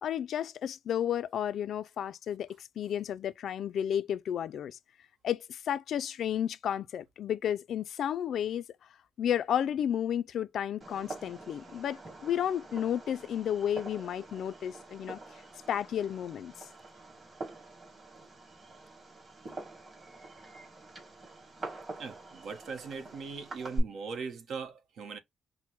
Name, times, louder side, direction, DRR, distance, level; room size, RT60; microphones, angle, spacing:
voice 1, 0.0-4.8 5.2-8.6 9.2-15.2 15.7-16.5, left 9 dB, 65° left, 0.3 m, -32 dB
Fireworks, 10.8-23.8, right 2 dB, 35° right, 2.8 m, -44 dB
voice 2, 22.0-25.2, right 5 dB, 70° right, 1.0 m, -40 dB
5.8 x 2.1 x 2.9 m
cardioid pair, 90°, 0 cm